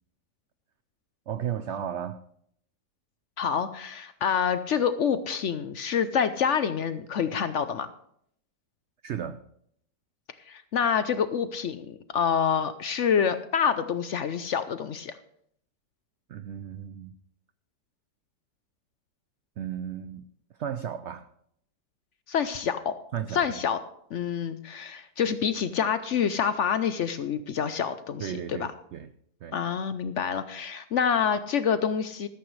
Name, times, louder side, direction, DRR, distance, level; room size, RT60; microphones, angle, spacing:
voice 1, 1.3-2.2 9.0-9.4 16.3-17.1 19.6-20.2 20.6-21.3 23.1-23.4 28.2-29.1 29.4-29.6, right 9 dB, 90° right, 12 dB, 0.6 m, -34 dB
voice 2, 3.4-7.9 10.5-15.1 22.3-22.9 23.3-23.8 24.1-28.7 29.5-32.3, left 7 dB, 65° left, 12 dB, 0.7 m, -27 dB
14.0 x 13.0 x 3.2 m, 0.69 s
omnidirectional pair, 1.8 m